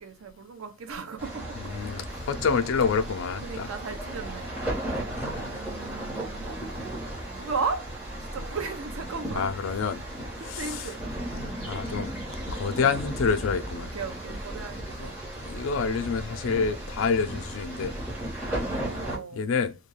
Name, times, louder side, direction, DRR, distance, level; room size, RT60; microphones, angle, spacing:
voice 1, 0.0-2.0 3.4-4.9 5.3-6.5 7.4-7.8 8.3-9.5 10.4-11.0 13.9-15.2 18.5-19.4, right 5 dB, 85° right, 0.5 m, -36 dB
sound 1, 1.2-19.2, right 1 dB, 10° right, 0.9 m, -35 dB
voice 2, 1.6-3.7 5.1-5.6 9.3-10.0 10.4-10.9 11.7-12.1 12.5-13.9 15.0-15.1 15.4-17.9 19.3-19.8, left 5 dB, 75° left, 0.4 m, -28 dB
2.3 x 2.2 x 3.1 m
head